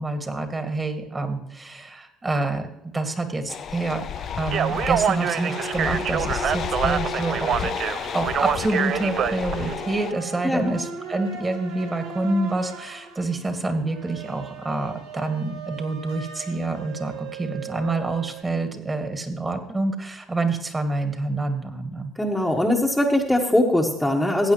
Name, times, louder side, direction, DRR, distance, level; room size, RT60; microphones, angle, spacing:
voice 1, 0.0-2.7 2.9-4.0 4.3-7.7 8.1-22.1, right 2 dB, 20° right, 6 dB, 2.0 m, -27 dB
sound 1, 3.0-3.2 4.8-18.4, right 5 dB, 85° right, 1.7 m, -38 dB
sound 2, 3.5-10.1, left 9 dB, 55° left, 0.5 m, -32 dB
Speech, 4.4-9.7, right 8 dB, 55° right, 0.5 m, -26 dB
voice 2, 22.2-24.5, left 1 dB, 5° left, 0 dB, 1.4 m, -21 dB
15.5 x 8.7 x 3.1 m, 0.85 s
supercardioid pair, 75°, 0 cm